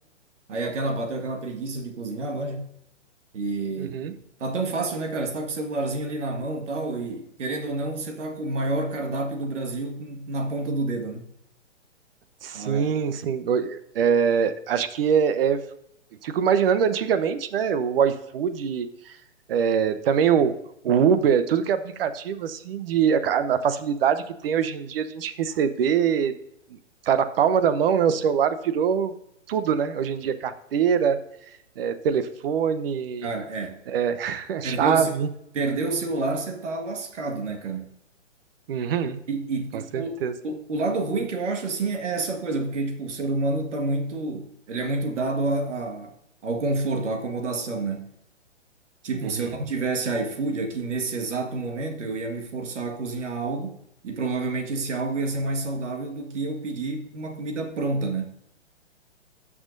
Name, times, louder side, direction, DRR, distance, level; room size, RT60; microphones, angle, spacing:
voice 1, 0.5-2.7 3.3-4.0 4.4-11.3 12.5-12.9 33.2-33.8 34.6-35.1 35.5-37.9 39.3-46.1 46.4-48.1 49.0-53.8 54.0-58.3, right 3 dB, 75° right, 1.9 m, -29 dB
voice 2, 3.8-4.2 12.4-15.6 16.2-19.1 19.5-20.5 20.8-26.3 27.1-29.1 29.5-31.2 31.8-33.3 33.9-35.3 38.7-39.2 39.7-40.3 49.2-49.5, right 7 dB, 50° right, 0.9 m, -23 dB
17.0 x 6.2 x 2.6 m
hypercardioid pair, 145°, 37 cm